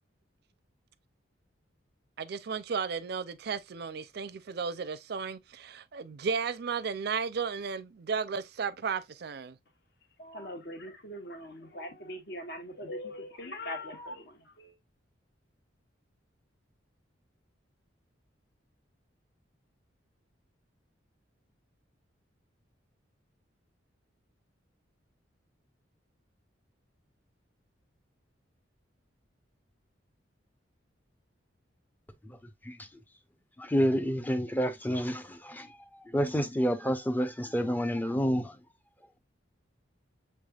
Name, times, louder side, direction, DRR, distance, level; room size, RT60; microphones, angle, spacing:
voice 1, 2.2-9.5, right 5 dB, 55° right, 0.4 m, -34 dB
voice 2, 10.2-14.8, left 1 dB, 55° left, 1.1 m, -41 dB
voice 3, 33.6-35.7 36.1-38.5, equal, 10° left, 0.5 m, -28 dB
6.7 x 3.3 x 2.3 m
head